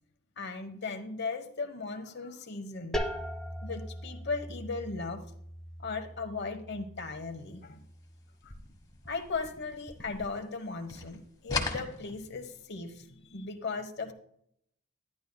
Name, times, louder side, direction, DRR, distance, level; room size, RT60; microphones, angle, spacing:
voice 1, 0.4-3.0 3.6-5.2 5.8-7.8 8.4-8.5 9.1-14.1, left 4 dB, 55° left, 7 dB, 1.0 m, -37 dB
sound 1, 2.9-8.5, equal, 5° left, 0.7 m, -40 dB
sound 2, 8.4-10.6 10.9-12.7, left 3 dB, 20° left, 1.2 m, -38 dB
11.0 x 10.5 x 2.2 m, 0.69 s
head